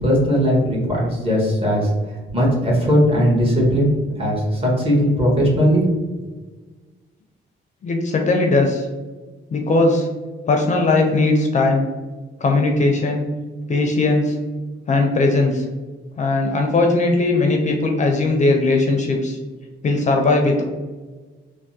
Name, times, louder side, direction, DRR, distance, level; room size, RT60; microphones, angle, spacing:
voice 1, 0.0-5.8, equal, 30° right, -2 dB, 1.2 m, -18 dB
voice 2, 7.8-8.9 9.5-10.1 10.5-11.9 12.4-13.3 13.7-14.4 14.9-15.6 16.2-19.4 19.8-20.6, left 2 dB, 40° left, 3 dB, 0.4 m, -18 dB
3.4 x 2.0 x 2.7 m, 1.3 s
cardioid pair, 90°, 20 cm